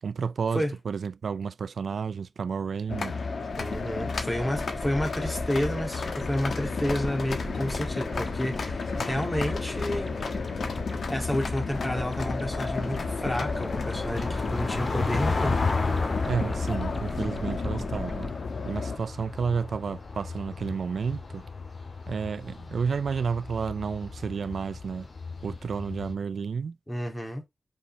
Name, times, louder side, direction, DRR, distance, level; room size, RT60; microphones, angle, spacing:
voice 1, 0.0-3.1 16.2-18.3 18.6-21.4 22.1-25.1 25.4-26.8, right 6 dB, 80° right, 0.4 m, -31 dB
sound 1, 2.9-19.0, left 4 dB, 75° left, 1.3 m, -32 dB
sound 2, 3.5-18.3, equal, 5° right, 0.6 m, -40 dB
voice 2, 3.6-10.1 11.1-15.6 26.9-27.4, equal, 15° left, 2.4 m, -30 dB
sound 3, 11.7-26.1, left 4 dB, 55° left, 1.9 m, -34 dB
5.6 x 5.3 x 3.3 m
wide cardioid pair, 110°, 0 cm